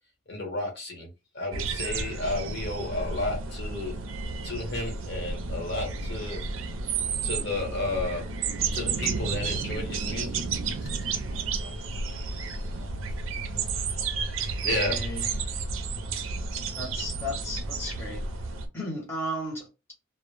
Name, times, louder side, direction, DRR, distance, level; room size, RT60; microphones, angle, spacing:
voice 1, 0.3-3.9 4.4-6.4 7.2-8.2 8.7-10.4 11.1-12.9 13.4-15.4, left 2 dB, 55° left, 1.0 m, -34 dB
sound 1, 1.5-18.7, right 4 dB, 70° right, 0.4 m, -32 dB
voice 2, 14.9-15.3 16.8-18.2 18.7-19.7, equal, 10° left, 0.7 m, -34 dB
2.0 x 2.0 x 3.1 m
head